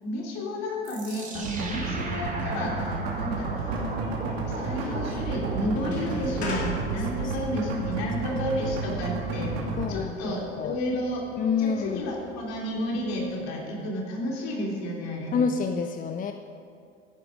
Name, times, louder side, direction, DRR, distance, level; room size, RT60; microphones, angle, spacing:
voice 1, 0.0-3.7 4.5-9.6 9.9-11.3 11.6-15.4, equal, 55° left, -2 dB, 3.4 m, -31 dB
sound 1, 0.8-6.1, right 2 dB, 25° right, 3.1 m, -38 dB
sound 2, 1.3-9.8, right 4 dB, 60° right, 2.6 m, -31 dB
sound 3, 2.8-13.3, left 2 dB, 85° left, 2.5 m, -41 dB
voice 2, 9.8-10.1 10.6-10.8 11.4-12.0 15.3-16.3, left 6 dB, 25° left, 7 dB, 0.6 m, -27 dB
14.0 x 11.0 x 5.0 m, 2.3 s
hypercardioid pair, 75°, 31 cm